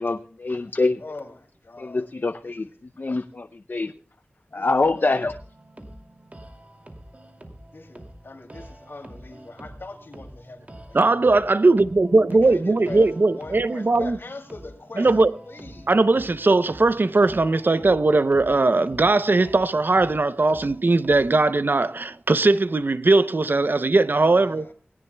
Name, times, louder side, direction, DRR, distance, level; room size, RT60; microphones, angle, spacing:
voice 1, 0.0-1.0 1.8-2.7 3.0-3.9 4.5-5.4, left 3 dB, 60° left, 0.5 m, -25 dB
voice 2, 1.0-2.1 2.4-2.7 4.5-4.7 4.9-5.1 7.7-11.0 12.3-15.9 24.1-24.7, left 3 dB, 80° left, 2.6 m, -41 dB
sound 1, 4.8-21.6, right 1 dB, 40° right, 2.4 m, -45 dB
voice 3, 10.9-14.2 15.0-15.3 15.9-24.7, right 3 dB, 60° right, 0.6 m, -19 dB
19.0 x 17.5 x 2.2 m
wide cardioid pair, 60°, 4 cm